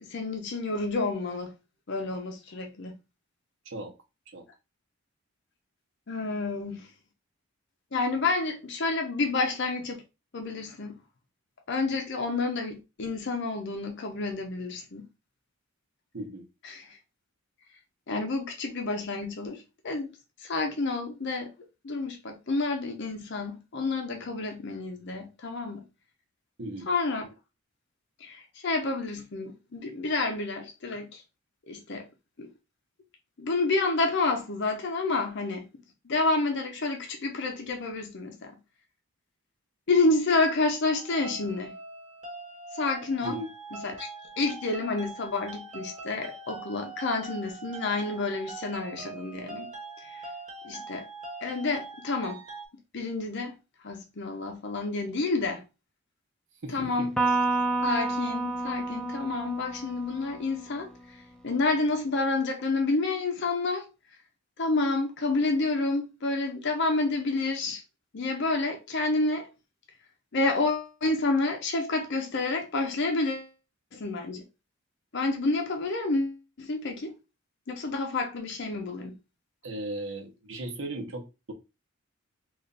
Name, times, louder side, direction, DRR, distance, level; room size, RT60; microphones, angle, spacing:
voice 1, 0.0-1.5 1.9-2.9 6.1-6.9 7.9-10.0 10.3-11.0 11.7-15.0 16.6-17.0 18.1-20.1 20.4-21.5 21.8-25.8 26.9-27.2 28.2-31.2 31.7-32.1 32.4-32.5 33.4-35.7 36.1-38.6 39.9-41.7 42.7-43.4 43.7-44.1 44.4-49.7 50.1-50.2 50.6-51.0 51.4-52.4 52.9-53.6 53.8-55.6 56.7-57.1 57.8-60.9 61.4-63.9 64.6-67.8 68.1-69.5 70.3-73.5 73.9-74.4 75.1-77.1 77.7-79.1, left 3 dB, 50° left, 0.6 m, -29 dB
voice 2, 26.6-26.9 43.2-43.5 56.6-57.1 79.6-81.5, right 1 dB, 60° right, 0.9 m, -37 dB
sound 1, 40.9-52.7, right 3 dB, 30° right, 1.1 m, -43 dB
Electric guitar, 57.2-60.7, right 3 dB, 5° left, 0.5 m, -29 dB
3.2 x 2.5 x 3.9 m
head